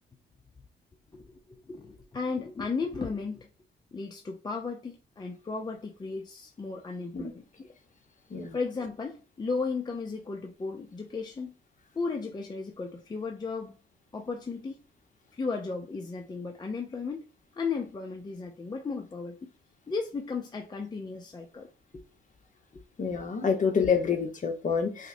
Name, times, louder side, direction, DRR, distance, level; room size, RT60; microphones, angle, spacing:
voice 1, 1.1-3.5 3.9-7.7 8.5-11.5 11.9-13.8 14.1-14.8 15.3-17.3 17.6-19.5 19.9-21.7 21.9-22.0 22.7-22.8 23.5-23.6, left 4 dB, 20° left, 0.5 m, -35 dB
voice 2, 23.0-25.1, left 6 dB, 40° left, 0.9 m, -27 dB
4.9 x 2.1 x 2.6 m
cardioid pair, 90°, 20 cm